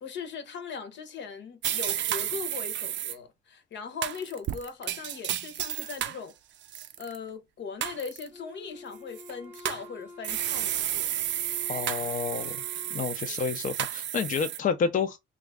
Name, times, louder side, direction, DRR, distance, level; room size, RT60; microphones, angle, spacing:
voice 1, 0.0-6.3 7.0-11.1 13.2-13.5, left 6 dB, 65° left, 0.9 m, -39 dB
sound 1, 1.6-3.1 4.0-6.2 6.6-7.2 7.8-8.3 9.2-9.8 10.2-14.6, right 12 dB, 65° right, 0.4 m, -32 dB
Wind instrument woodwind instrument, 8.3-13.2, left 2 dB, 10° right, 0.8 m, -48 dB
voice 2, 11.7-12.6 12.9-15.2, left 6 dB, 40° left, 0.5 m, -29 dB
3.0 x 2.5 x 3.4 m
cardioid pair, 90°, 20 cm